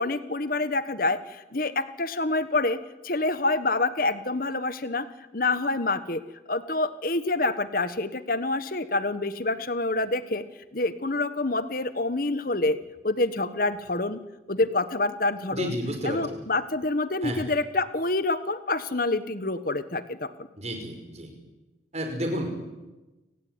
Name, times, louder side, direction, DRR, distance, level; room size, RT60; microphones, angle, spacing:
voice 1, 0.0-2.8 3.0-5.1 5.3-6.2 6.5-10.4 10.7-12.8 13.0-14.2 14.5-15.8 16.0-20.3, left 2 dB, 50° left, 13 dB, 1.3 m, -27 dB
voice 2, 15.5-16.4 17.2-17.4 20.6-21.3 21.9-22.5, equal, 35° right, 5 dB, 5.6 m, -31 dB
30.0 x 17.0 x 9.7 m, 1.1 s
head